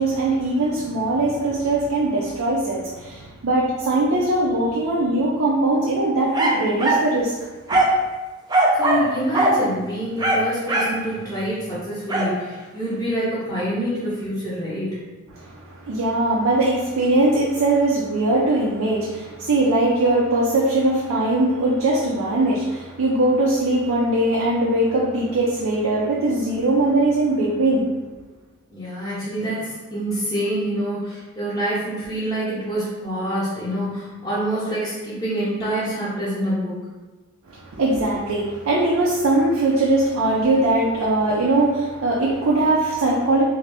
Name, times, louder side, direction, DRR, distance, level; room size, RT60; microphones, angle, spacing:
voice 1, 0.0-7.3 7.7-7.8 15.3-27.9 37.5-43.4, right 2 dB, 80° right, -4 dB, 0.5 m, -21 dB
sound 1, 6.3-7.1 7.7-8.0 8.5-9.1 9.3-9.6 10.2-11.0 12.1-12.3, right 1 dB, 20° right, 0.4 m, -19 dB
voice 2, 8.7-15.0 28.7-36.8, right 1 dB, 15° left, -11 dB, 0.6 m, -26 dB
2.6 x 2.5 x 3.3 m, 1.2 s
head